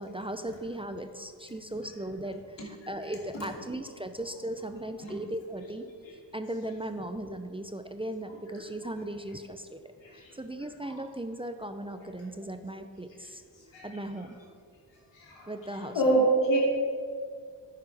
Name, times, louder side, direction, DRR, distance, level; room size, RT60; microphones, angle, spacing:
voice 1, 0.0-5.9 6.3-13.4 13.8-14.4 15.5-16.2, right 1 dB, 15° right, 7 dB, 0.5 m, -37 dB
voice 2, 10.0-10.3 10.9-11.0 13.7-13.9 15.1-15.5 15.9-16.6, right 2 dB, 85° left, -3 dB, 2.7 m, -26 dB
10.5 x 9.2 x 3.5 m, 2.1 s
cardioid pair, 65°, 43 cm